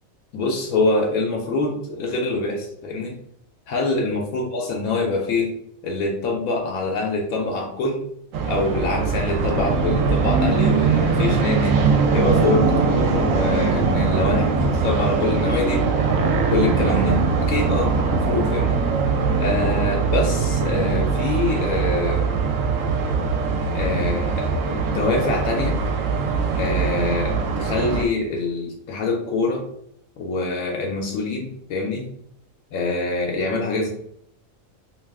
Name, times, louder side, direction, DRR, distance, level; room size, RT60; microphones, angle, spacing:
voice 1, 0.3-3.2 3.7-5.5 5.8-8.0 8.4-11.8 12.1-15.9 16.5-18.8 19.3-22.3 23.7-25.8 26.6-29.6 30.2-32.1 32.7-33.9, left 3 dB, 90° left, 0 dB, 1.1 m, -25 dB
sound 1, 8.3-28.0, right 4 dB, 75° right, 0.9 m, -21 dB
2.5 x 2.3 x 3.4 m, 0.71 s
omnidirectional pair, 1.4 m